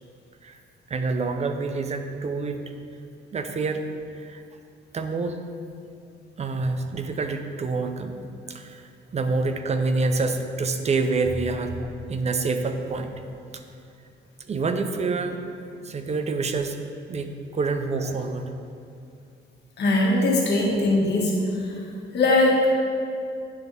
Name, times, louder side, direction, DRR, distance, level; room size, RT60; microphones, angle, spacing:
voice 1, 0.9-2.6 3.3-3.8 4.2-4.4 4.9-5.4 6.4-8.2 8.5-13.1 13.5-13.6 14.5-15.5 15.8-16.8 17.1-18.6, right 3 dB, 35° right, 7 dB, 0.5 m, -27 dB
voice 2, 19.8-21.7 22.1-22.7, left 2 dB, 60° left, -3 dB, 1.5 m, -21 dB
9.7 x 3.4 x 4.0 m, 2.4 s
cardioid pair, 90°, 20 cm